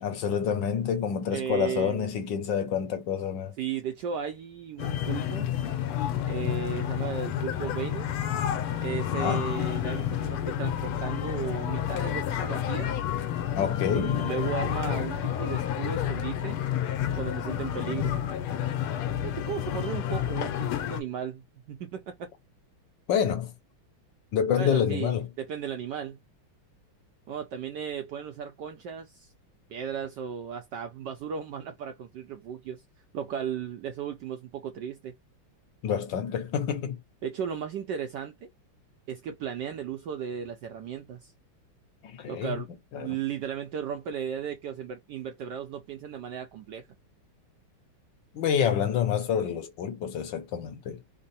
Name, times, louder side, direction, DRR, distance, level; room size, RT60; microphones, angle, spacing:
voice 1, 0.0-3.6 9.0-9.4 13.6-14.2 23.1-23.5 24.3-25.3 35.8-37.0 42.0-42.6 42.9-43.1 48.3-51.0, left 8 dB, 65° left, 1.3 m, -28 dB
voice 2, 1.3-2.1 3.6-5.5 6.3-8.1 8.8-13.0 13.9-16.6 17.1-18.2 19.2-22.3 24.6-26.2 27.3-29.3 29.7-32.8 33.1-35.1 37.2-38.5 39.1-41.3 42.3-42.7 42.9-46.9, right 8 dB, 75° right, 1.0 m, -35 dB
sound 1, 4.8-21.0, left 10 dB, 80° left, 1.6 m, -30 dB
3.6 x 2.0 x 4.0 m
omnidirectional pair, 2.4 m